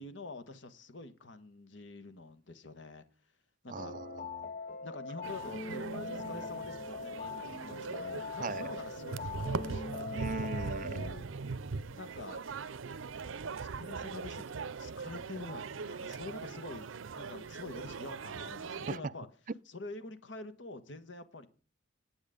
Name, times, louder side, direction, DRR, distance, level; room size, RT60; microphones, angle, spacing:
voice 1, 0.0-3.0 3.6-4.0 4.8-10.1 10.9-11.5 11.9-12.5 13.4-19.3 19.7-21.5, left 2 dB, 70° left, 1.4 m, -47 dB
sound 1, 3.7-11.1, left 4 dB, 40° left, 0.7 m, -42 dB
voice 2, 3.7-4.5 8.4-8.7 10.1-11.0 18.9-19.1, right 4 dB, 40° right, 0.4 m, -39 dB
sound 2, 5.2-19.0, right 4 dB, 85° right, 0.6 m, -41 dB
10.0 x 9.1 x 5.1 m
head